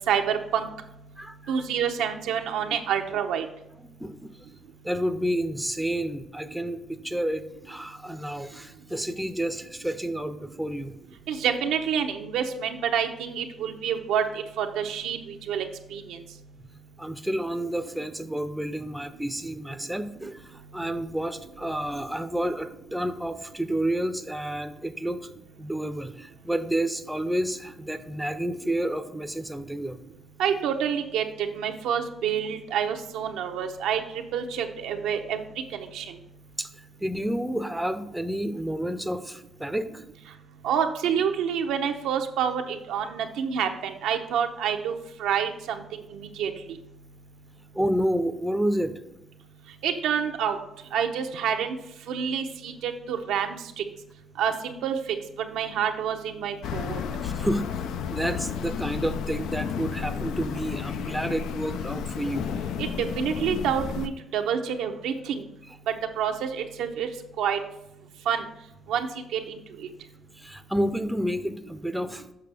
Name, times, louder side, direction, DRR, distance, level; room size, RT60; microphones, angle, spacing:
voice 1, 0.1-0.7 1.5-3.4 11.3-15.2 15.5-15.6 15.9-16.2 30.4-31.2 31.5-34.0 34.3-35.4 35.7-36.0 40.6-44.9 45.2-45.8 46.1-46.5 49.8-50.6 50.9-51.8 52.1-53.8 54.4-55.0 55.5-57.0 62.8-65.4 66.2-67.1 67.4-67.6 68.3-68.4 68.9-69.1 69.3-69.6, right 8 dB, 90° right, 5 dB, 0.7 m, -27 dB
voice 2, 1.2-1.6 2.7-2.8 4.0-4.3 4.8-10.9 16.6-16.7 17.0-25.3 25.6-30.0 36.6-36.7 37.0-40.0 47.7-48.9 56.8-56.9 57.2-57.6 58.1-62.5 70.4-72.3, right 1 dB, 5° right, 9 dB, 0.5 m, -30 dB
sound 1, 56.6-64.1, left 7 dB, 85° left, 0.4 m, -32 dB
6.8 x 5.9 x 3.4 m, 0.85 s
cardioid pair, 90°, 0 cm